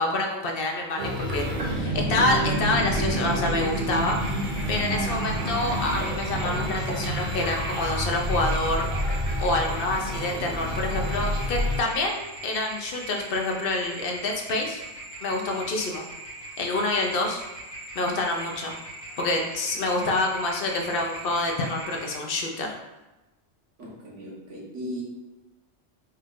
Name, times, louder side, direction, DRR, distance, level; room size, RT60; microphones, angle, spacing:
voice 1, 0.0-4.2 4.7-14.8 15.2-16.0 16.6-17.4 18.0-18.7 19.2-22.8, left 2 dB, 55° left, 1 dB, 0.7 m, -27 dB
sound 1, 1.0-11.8, equal, 55° right, 1.1 m, -28 dB
sound 2, 1.7-9.6, right 1 dB, 10° right, 1.3 m, -39 dB
sound 3, 2.5-22.2, right 1 dB, 35° left, 1.2 m, -41 dB
voice 2, 23.8-25.0, equal, 80° right, -4 dB, 1.4 m, -37 dB
4.4 x 2.4 x 3.6 m, 1.0 s
omnidirectional pair, 1.2 m